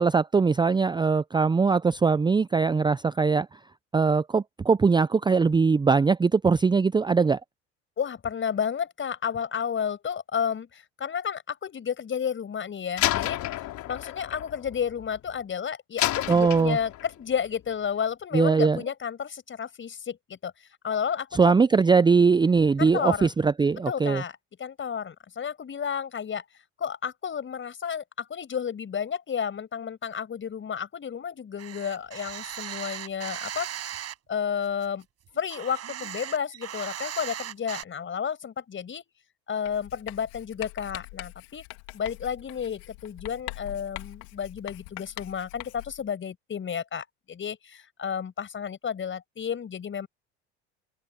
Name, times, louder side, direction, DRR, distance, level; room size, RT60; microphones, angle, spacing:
voice 1, 0.0-3.6 3.9-7.4 16.3-16.8 18.3-18.8 21.3-24.2, right 5 dB, 15° right, 0.6 m, -21 dB
voice 2, 8.0-13.4 13.8-20.5 20.8-21.5 22.8-23.3 23.8-26.5 26.8-34.0 34.3-35.0 35.4-39.0 39.5-41.6 41.9-50.1, left 7 dB, 35° left, 6.0 m, -32 dB
Slam, 13.0-15.4 16.0-17.2, left 15 dB, 55° left, 4.0 m, -30 dB
sound 1, 31.6-34.1 34.6-37.8, right 10 dB, 45° right, 6.5 m, -37 dB
Writing, 39.7-46.1, left 28 dB, 70° left, 2.9 m, -43 dB
hypercardioid pair, 75°, 34 cm